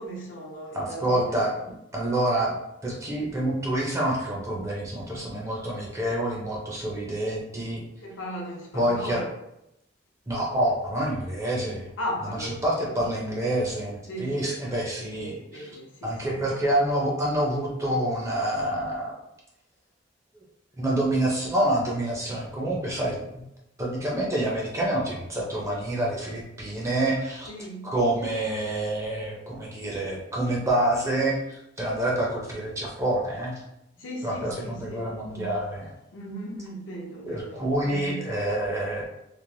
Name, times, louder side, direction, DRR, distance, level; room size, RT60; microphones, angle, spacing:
voice 1, 0.0-1.4 8.0-9.3 12.0-13.0 14.1-14.8 15.1-16.4 27.5-27.9 34.0-35.5 36.1-38.2, equal, 75° left, -2 dB, 0.7 m, -37 dB
voice 2, 0.7-1.5 1.9-2.5 2.8-7.8 8.7-9.2 10.3-11.9 12.6-15.7 16.0-19.1 20.3-20.4 20.8-23.4 23.8-27.5 27.8-33.6 34.2-35.9 37.2-39.0, right 1 dB, 15° right, -3 dB, 0.5 m, -27 dB
3.1 x 2.0 x 2.6 m, 0.85 s
head